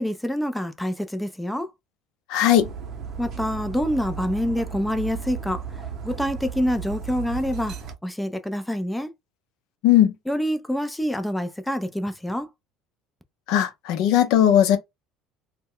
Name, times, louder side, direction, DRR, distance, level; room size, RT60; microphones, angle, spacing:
voice 1, 0.0-1.7 3.2-5.6 6.0-7.8 8.0-9.1 10.3-12.5, equal, 5° left, 0.4 m, -26 dB
voice 2, 2.3-2.7 9.8-10.1 13.5-14.8, left 11 dB, 70° left, 0.5 m, -18 dB
Dog, 2.6-7.9, right 6 dB, 50° right, 0.7 m, -35 dB
2.1 x 2.0 x 3.6 m
supercardioid pair, 100°, 0 cm